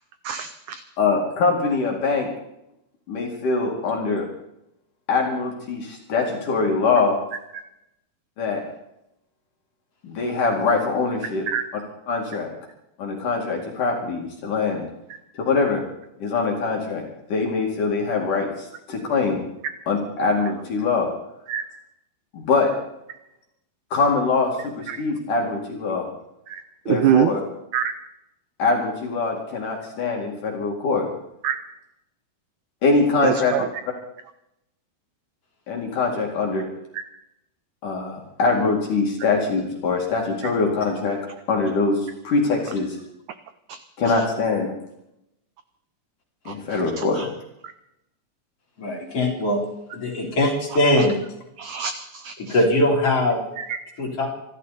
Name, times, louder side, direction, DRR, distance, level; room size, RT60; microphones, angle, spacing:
voice 1, 0.3-0.8 11.5-11.6 21.5-21.6 24.9-25.0 26.5-26.6 26.9-27.3 27.7-27.9 31.4-31.6 33.2-33.7 36.9-37.0 43.7-43.8 47.0-47.1 51.0-51.1 51.6-52.6 53.6-53.8, right 9 dB, 75° right, 10 dB, 1.8 m, -24 dB
voice 2, 1.0-2.3 3.1-4.3 5.1-7.2 8.4-8.6 10.0-11.5 12.1-12.5 13.0-14.9 15.3-15.8 16.2-17.0 17.3-19.4 19.9-21.1 22.3-22.7 23.9-26.1 26.9-27.4 28.6-31.1 32.8-33.6 35.7-36.7 37.8-41.2 41.5-43.0 44.0-44.7 46.5-47.3, left 4 dB, 60° left, 0 dB, 3.8 m, -23 dB
voice 3, 48.8-49.6 49.9-51.2 52.5-53.4 54.0-54.3, left 1 dB, 40° left, -1 dB, 4.6 m, -21 dB
26.5 x 13.0 x 4.2 m, 0.82 s
omnidirectional pair, 4.3 m